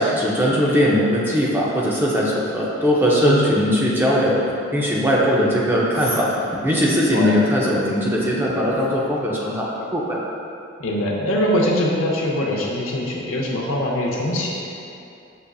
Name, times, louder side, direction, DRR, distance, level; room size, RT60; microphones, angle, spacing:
voice 1, 0.0-4.4 4.7-10.2, equal, 10° right, -5 dB, 0.4 m, -20 dB
voice 2, 10.8-14.9, left 1 dB, 80° left, -2 dB, 0.6 m, -22 dB
6.6 x 2.4 x 2.3 m, 2.6 s
head